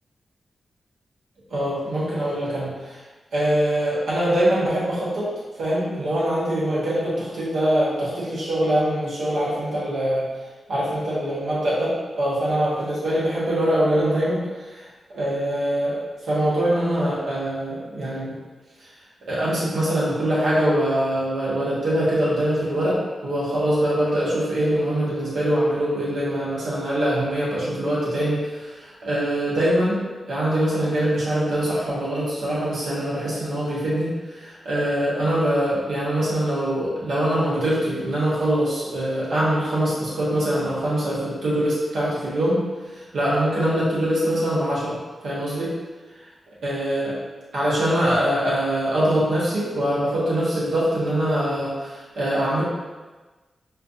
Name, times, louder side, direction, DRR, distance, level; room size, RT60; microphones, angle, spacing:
voice 1, 1.5-3.0 3.3-10.3 10.7-16.0 16.2-18.3 18.8-18.9 19.3-30.0 30.2-42.6 42.9-45.7 46.6-47.2 47.5-52.6, right 1 dB, 85° right, -8 dB, 1.2 m, -23 dB
4.4 x 2.5 x 2.6 m, 1.2 s
cardioid pair, 60°, 0 cm